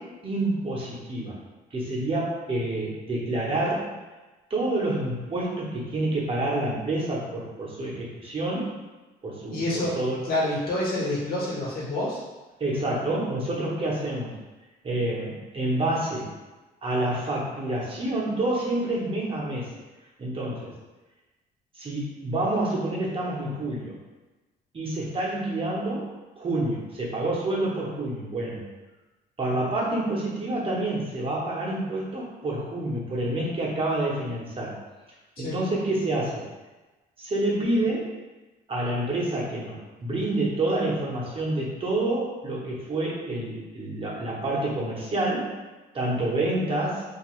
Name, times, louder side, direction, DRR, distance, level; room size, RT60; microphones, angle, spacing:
voice 1, 0.0-1.4 1.7-3.9 4.5-8.7 9.2-10.3 12.6-14.3 14.8-16.3 16.8-19.7 20.2-20.7 21.8-24.0 24.7-28.6 29.4-34.7 35.4-36.4 37.2-38.1 38.7-45.5 45.9-47.0, right 1 dB, 30° right, -5 dB, 0.8 m, -28 dB
voice 2, 9.5-10.0 10.2-12.2 35.4-35.6, left 1 dB, 60° left, -6 dB, 1.1 m, -27 dB
2.8 x 2.4 x 3.0 m, 1.2 s
cardioid pair, 110°, 17 cm